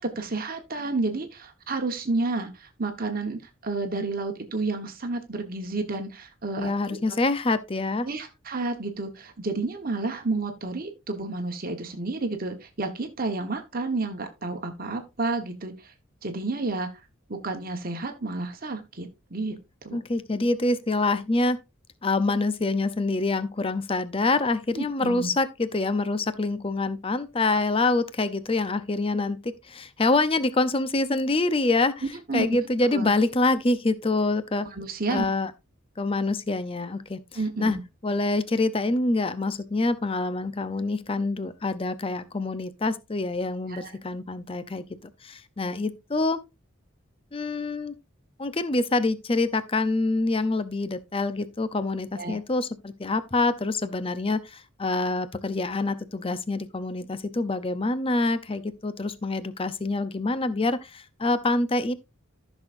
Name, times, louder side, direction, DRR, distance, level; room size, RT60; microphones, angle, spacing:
voice 1, 0.0-6.7 8.0-15.9 16.2-16.9 17.3-19.6 19.8-20.0 24.7-25.3 32.3-32.5 32.9-33.1 34.7-35.2 37.3-37.8 43.7-43.9 52.2-52.4, right 3 dB, 45° right, 1.2 m, -30 dB
voice 2, 6.6-8.1 19.9-21.6 22.0-31.9 32.3-34.7 35.1-35.5 36.0-37.2 37.6-37.8 38.0-44.8 45.2-46.4 47.3-47.9 48.4-61.9, left 2 dB, 25° left, 0.6 m, -26 dB
14.5 x 6.3 x 2.6 m
head